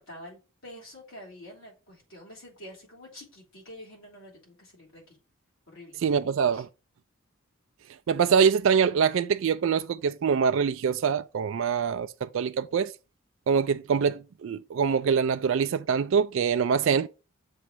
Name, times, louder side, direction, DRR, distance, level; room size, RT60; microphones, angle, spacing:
voice 1, 0.0-5.2 5.7-6.0 6.5-6.6, equal, 70° left, 3.5 m, -47 dB
voice 2, 6.0-6.7 8.1-12.9 13.5-17.1, right 6 dB, 60° right, 0.3 m, -24 dB
7.0 x 3.2 x 6.0 m
head